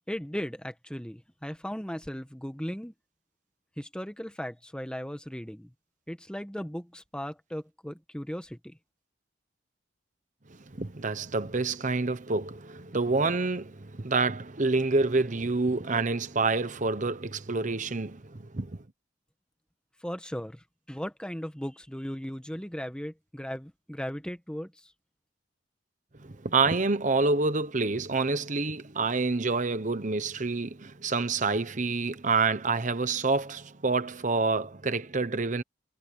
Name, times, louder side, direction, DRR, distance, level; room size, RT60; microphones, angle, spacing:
voice 1, 0.1-2.9 3.8-5.7 6.1-8.8 20.0-24.9, equal, 5° left, 1.3 m, -37 dB
voice 2, 10.7-18.8 26.2-35.6, right 3 dB, 40° right, 1.0 m, -27 dB
head